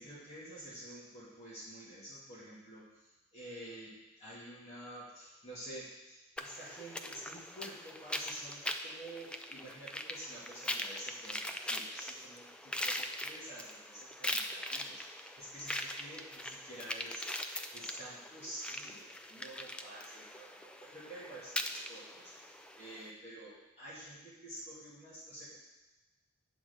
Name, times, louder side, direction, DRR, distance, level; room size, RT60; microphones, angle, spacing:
voice 1, 0.0-17.3 17.7-25.6, right 1 dB, 35° left, -9 dB, 2.4 m, -49 dB
sound 1, 6.4-23.1, left 1 dB, 5° left, 0.4 m, -41 dB
9.1 x 4.1 x 7.0 m, 1.1 s
head